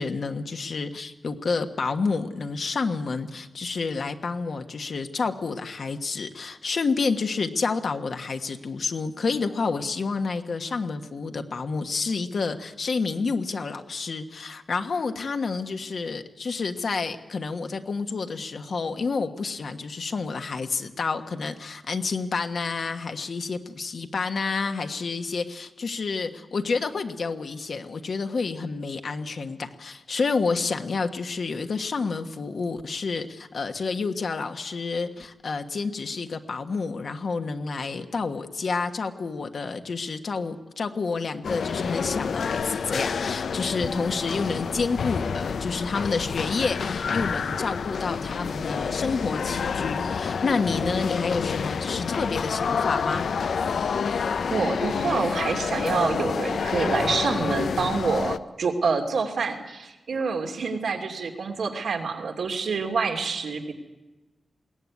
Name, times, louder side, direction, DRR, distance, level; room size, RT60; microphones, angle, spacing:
voice 1, 0.0-53.3, left 4 dB, 60° left, 7 dB, 1.3 m, -29 dB
sound 1, 41.4-58.4, left 6 dB, 80° left, 0.6 m, -28 dB
voice 2, 54.5-63.7, right 4 dB, 85° right, 2 dB, 2.8 m, -27 dB
21.5 x 17.0 x 9.6 m, 1.1 s
wide cardioid pair, 135°, 0 cm